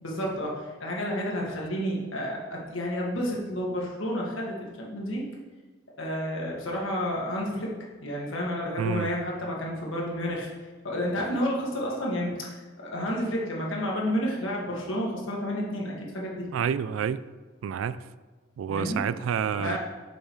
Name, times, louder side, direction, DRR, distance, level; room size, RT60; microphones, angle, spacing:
voice 1, 0.0-5.2 6.0-7.7 8.0-10.5 10.8-16.5 18.7-19.0 19.6-19.8, equal, 80° left, -2 dB, 1.9 m, -30 dB
voice 2, 8.8-9.1 16.5-17.2 17.6-18.0 18.6-19.8, right 7 dB, 90° right, 15 dB, 0.3 m, -28 dB
7.3 x 4.7 x 5.5 m, 1.3 s
head